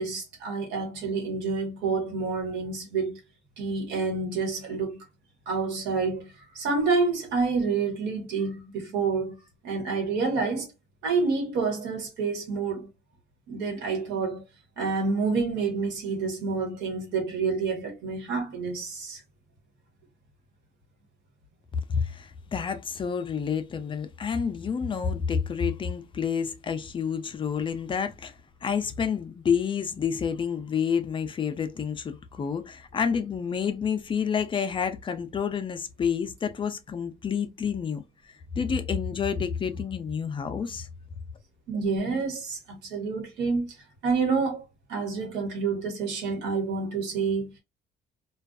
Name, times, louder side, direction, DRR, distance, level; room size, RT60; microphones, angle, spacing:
voice 1, 0.0-3.2 3.6-5.0 5.5-9.4 9.6-10.7 11.0-12.9 13.5-14.4 14.8-19.2 41.7-43.8 44.0-44.6 44.9-47.5, right 4 dB, 90° right, 1.3 m, -28 dB
voice 2, 21.9-28.3 28.6-40.9, left 6 dB, 30° left, 0.4 m, -29 dB
2.5 x 2.3 x 2.3 m
cardioid pair, 110°, 17 cm